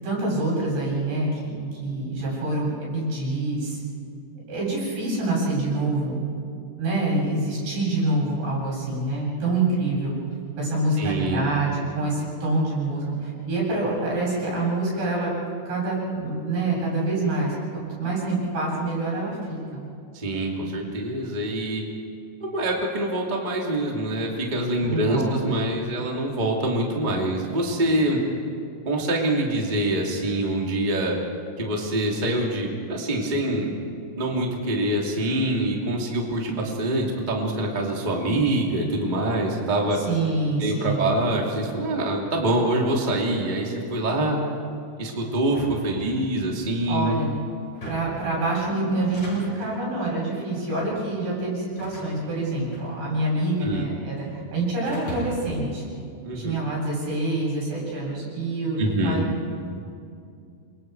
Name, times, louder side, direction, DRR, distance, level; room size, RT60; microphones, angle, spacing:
voice 1, 0.0-1.5 1.8-3.8 4.5-6.4 6.8-10.1 10.6-15.3 15.6-19.8 24.8-25.4 40.0-41.1 46.9-47.3 47.9-55.8 56.3-59.3, right 2 dB, 90° right, -5 dB, 10.0 m, -26 dB
voice 2, 11.0-11.5 20.1-21.8 22.4-28.2 28.8-31.2 31.6-33.8 34.1-40.0 40.6-44.4 45.0-47.2 53.6-53.9 56.2-56.6 58.8-59.2, right 1 dB, 15° right, -1 dB, 2.2 m, -25 dB
sound 1, 45.4-46.6 47.6-48.3 48.9-49.8 50.6-51.0 51.8-53.3 53.6-54.3 54.8-55.6, equal, 35° left, 8.6 m, -39 dB
28.5 x 25.0 x 4.8 m, 2.4 s
omnidirectional pair, 4.8 m